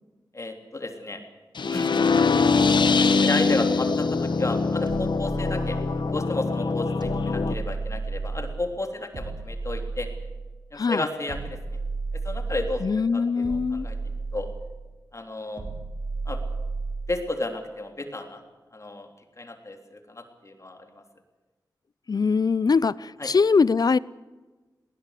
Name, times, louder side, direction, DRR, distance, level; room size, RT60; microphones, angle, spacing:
voice 1, 0.3-1.2 1.7-1.9 2.9-5.8 6.1-10.1 10.7-11.6 12.2-12.8 13.1-14.0 14.3-14.5 15.1-15.6 16.2-16.4 17.1-18.4 18.7-19.1 19.4-20.9 23.2-23.3, left 2 dB, 40° left, 5 dB, 3.5 m, -32 dB
sound 1, 1.6-7.5, left 4 dB, 75° left, 1.3 m, -23 dB
sound 2, 4.9-6.2 7.0-8.6 9.1-10.6 11.3-12.9 13.4-14.8 15.6-17.2, right 3 dB, 75° right, 3.4 m, -33 dB
voice 2, 10.8-11.1 12.8-13.9 22.1-24.0, left 5 dB, 55° left, 21 dB, 0.6 m, -22 dB
21.0 x 18.5 x 8.4 m, 1.2 s
wide cardioid pair, 65°, 8 cm